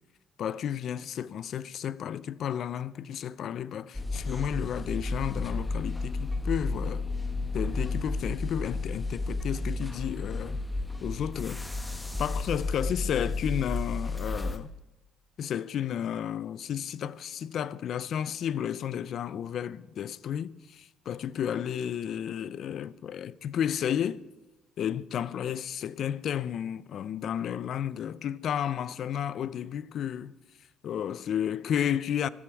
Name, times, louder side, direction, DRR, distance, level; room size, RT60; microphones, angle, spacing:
voice 1, 0.4-7.1 7.5-10.6 11.0-11.6 12.2-14.7 15.4-24.2 24.8-30.4 30.8-32.3, left 9 dB, 60° left, 0.4 m, -32 dB
sound 1, 3.9-14.6, left 3 dB, 10° left, 1.0 m, -32 dB
14.0 x 13.0 x 4.6 m
cardioid pair, 100°, 0 cm